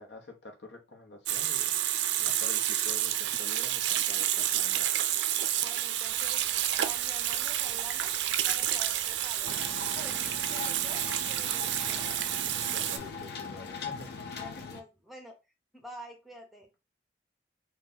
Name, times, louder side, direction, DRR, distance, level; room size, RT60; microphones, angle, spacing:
voice 1, 0.0-1.8 2.2-4.9 12.7-14.4, left 2 dB, 85° left, 3 dB, 0.9 m, -48 dB
Water tap faucet / Sink (filling or washing), 1.3-13.0, right 12 dB, 80° right, 0.3 m, -29 dB
voice 2, 5.6-8.2 8.5-12.0 14.2-15.3 15.7-16.7, equal, ahead, 2 dB, 0.7 m, -49 dB
sound 1, 6.0-13.2, equal, 35° left, 2.1 m, -52 dB
sound 2, 9.4-14.8, left 5 dB, 65° left, 0.5 m, -40 dB
3.7 x 2.3 x 2.7 m, 0.26 s
head